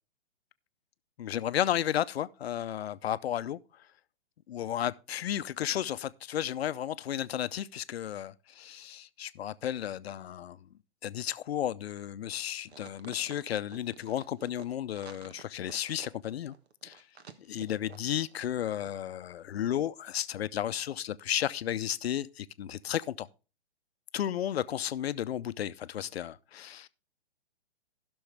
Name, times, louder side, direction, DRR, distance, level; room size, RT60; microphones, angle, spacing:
voice 1, 1.2-3.6 4.5-10.6 11.0-16.5 16.8-17.0 17.5-23.3 24.1-26.9, left 11 dB, 70° left, 0.6 m, -33 dB
sound 1, 12.7-18.6 18.8-18.9, right 6 dB, 75° right, 1.4 m, -51 dB
15.5 x 6.2 x 3.4 m
hypercardioid pair, 150°, 32 cm